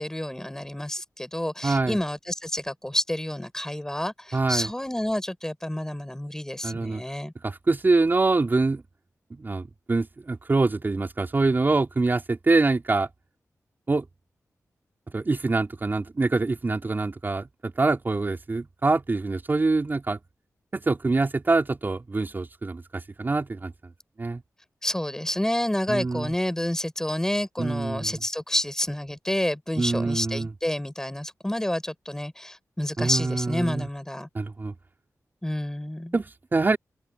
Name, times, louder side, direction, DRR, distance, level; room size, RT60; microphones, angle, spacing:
voice 1, 0.0-7.3 24.8-34.3 35.4-36.1, left 1 dB, 10° left, 6.0 m, -29 dB
voice 2, 1.6-2.0 4.3-4.7 6.6-7.0 7.4-8.8 9.3-13.1 13.9-14.0 15.1-20.2 20.7-23.7 24.2-24.4 25.9-26.3 27.6-28.2 29.8-30.5 33.0-33.9 34.3-34.7 36.1-36.8, right 3 dB, 35° right, 4.3 m, -25 dB
wide cardioid pair, 105°, 6 cm